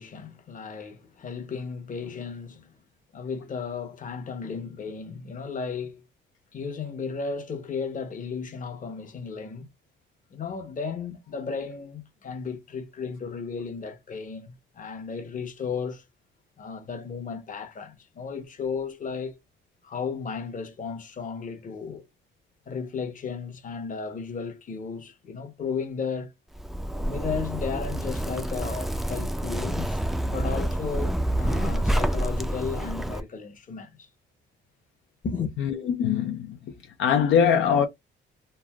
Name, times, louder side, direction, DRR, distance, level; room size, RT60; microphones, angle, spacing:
voice 1, 0.0-2.7 3.1-6.0 6.5-9.7 10.3-16.0 16.6-19.4 19.8-22.1 22.7-26.3 26.9-34.1 35.2-35.5, left 5 dB, 40° left, 0.9 m, -34 dB
Zipper (clothing), 26.5-33.2, right 1 dB, ahead, 0.4 m, -28 dB
voice 2, 35.6-36.6 37.0-37.9, left 7 dB, 80° left, 0.6 m, -22 dB
3.2 x 2.4 x 2.3 m
cardioid pair, 90°, 20 cm